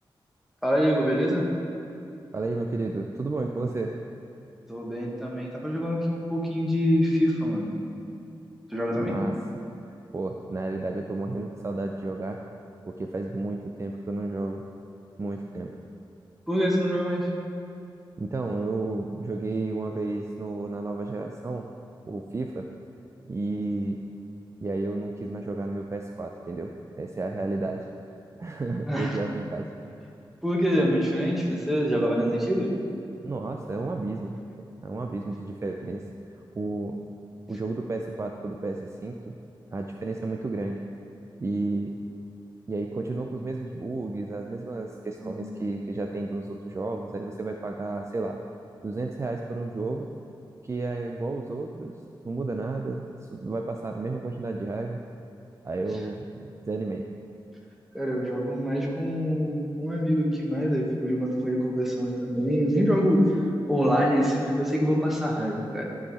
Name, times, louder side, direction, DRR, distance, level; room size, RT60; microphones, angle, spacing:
voice 1, 0.6-1.4 4.7-7.7 8.7-9.2 16.5-17.3 28.9-29.2 30.4-32.7 45.2-45.4 57.9-63.2 63.7-65.9, equal, 5° right, -3 dB, 1.5 m, -25 dB
voice 2, 2.3-3.9 9.0-9.3 10.1-12.4 12.8-14.6 15.2-15.7 18.2-21.7 22.1-22.7 23.2-24.0 24.6-26.7 27.0-27.8 28.4-29.7 33.2-34.3 34.8-36.0 36.5-37.0 37.5-39.4 39.7-40.8 41.4-41.9 42.7-48.4 48.8-50.1 50.6-51.9 52.2-55.0 55.6-57.0, right 2 dB, 30° right, 2 dB, 0.4 m, -32 dB
13.5 x 4.7 x 4.2 m, 2.6 s
wide cardioid pair, 100°, 9 cm